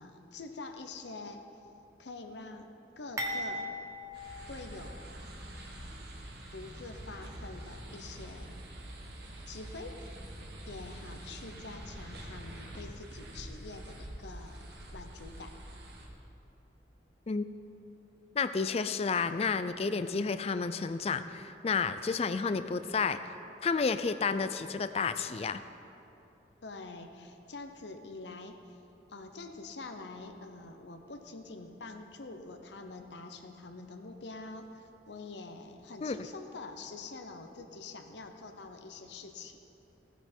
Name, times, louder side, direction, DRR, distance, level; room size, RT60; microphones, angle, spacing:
voice 1, 0.0-1.7 2.0-2.7 3.0-3.7 4.5-5.0 5.7-6.2 6.5-8.5 9.5-10.1 10.7-15.5 26.6-28.8 29.1-39.6, left 3 dB, 75° left, 5 dB, 0.8 m, -46 dB
sound 1, 3.2-5.3 5.7-5.8 6.7-6.9, equal, 20° right, 1.1 m, -39 dB
sound 2, 4.1-16.1, right 1 dB, 60° right, 1.7 m, -46 dB
voice 2, 18.4-23.3 23.6-25.6 36.0-36.2, left 5 dB, 35° left, 11 dB, 0.4 m, -31 dB
16.0 x 10.0 x 4.4 m, 2.9 s
head